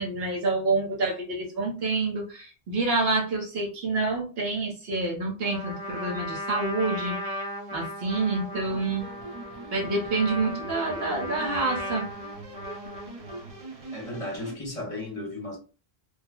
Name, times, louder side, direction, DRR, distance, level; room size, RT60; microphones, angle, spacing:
voice 1, 0.0-7.2 7.7-9.1 9.7-12.1, right 3 dB, 70° right, 1.2 m, -28 dB
Trumpet, 5.4-13.5, left 1 dB, 90° right, 1.4 m, -36 dB
sound 1, 8.5-14.5, right 2 dB, 40° right, 0.6 m, -43 dB
voice 2, 13.9-15.6, left 1 dB, 35° left, 1.0 m, -35 dB
3.5 x 2.0 x 2.2 m
omnidirectional pair, 1.1 m